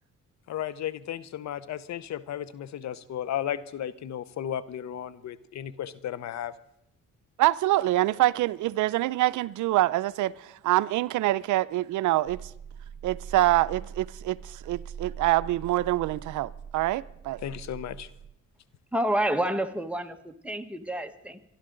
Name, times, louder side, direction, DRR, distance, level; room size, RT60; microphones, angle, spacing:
voice 1, 0.5-6.5 17.4-18.1, left 10 dB, 65° left, 0.7 m, -34 dB
voice 2, 7.4-12.4 13.0-17.4, right 16 dB, 75° right, 0.5 m, -25 dB
sound 1, 12.3-18.3, right 7 dB, 30° right, 0.7 m, -42 dB
voice 3, 18.9-21.5, right 1 dB, 5° right, 1.3 m, -29 dB
26.5 x 11.5 x 3.8 m
cardioid pair, 90°, 30 cm